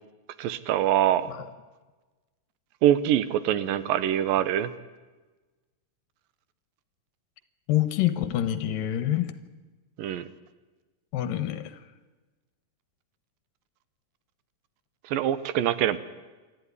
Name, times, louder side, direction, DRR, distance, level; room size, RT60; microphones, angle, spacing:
voice 1, 0.4-1.3 2.8-4.7 10.0-10.3 15.0-16.0, right 11 dB, 85° right, 14 dB, 2.6 m, -24 dB
voice 2, 7.7-9.4 11.1-11.8, left 12 dB, 75° left, 12 dB, 2.8 m, -26 dB
28.0 x 12.5 x 9.7 m, 1.3 s
omnidirectional pair, 4.0 m